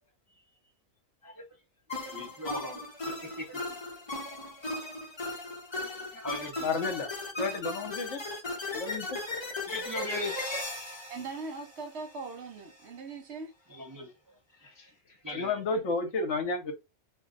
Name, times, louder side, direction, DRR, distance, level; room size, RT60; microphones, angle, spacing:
sound 1, 1.9-12.3, left 2 dB, 25° left, 0.7 m, -37 dB
voice 1, 2.1-3.8 4.2-4.9 5.8-6.7 9.7-10.4 13.7-14.1 14.5-15.8, left 1 dB, 25° right, 0.4 m, -40 dB
voice 2, 6.6-7.1 7.4-8.2 8.7-9.2 15.3-16.7, left 3 dB, 65° left, 1.0 m, -31 dB
voice 3, 11.1-13.5, right 4 dB, 60° right, 0.8 m, -40 dB
2.6 x 2.2 x 3.7 m
omnidirectional pair, 1.4 m